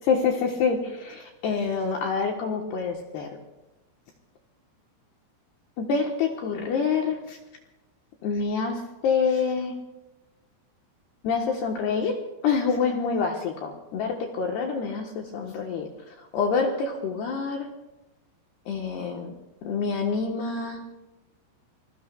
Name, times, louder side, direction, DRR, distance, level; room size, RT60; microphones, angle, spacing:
voice 1, 0.1-3.3 5.8-7.4 8.2-9.7 11.2-15.9 16.3-17.7 18.7-19.3 19.6-20.8, left 5 dB, 70° left, 1 dB, 2.7 m, -27 dB
27.5 x 21.0 x 2.3 m, 1.1 s
omnidirectional pair, 5.9 m